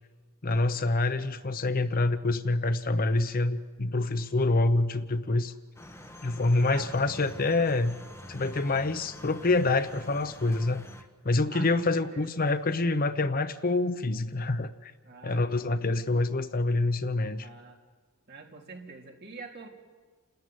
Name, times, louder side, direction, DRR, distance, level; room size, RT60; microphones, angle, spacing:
voice 1, 0.4-5.5 6.2-8.0 8.3-10.9 11.2-14.9 15.2-17.5, left 2 dB, 40° left, 12 dB, 0.8 m, -26 dB
sound 1, 5.8-11.0, left 1 dB, 15° left, 1.4 m, -47 dB
voice 2, 11.5-12.4 15.0-15.5 17.4-17.8 18.3-19.7, right 4 dB, 50° right, 1 dB, 3.2 m, -45 dB
28.5 x 13.5 x 9.5 m, 1.5 s
head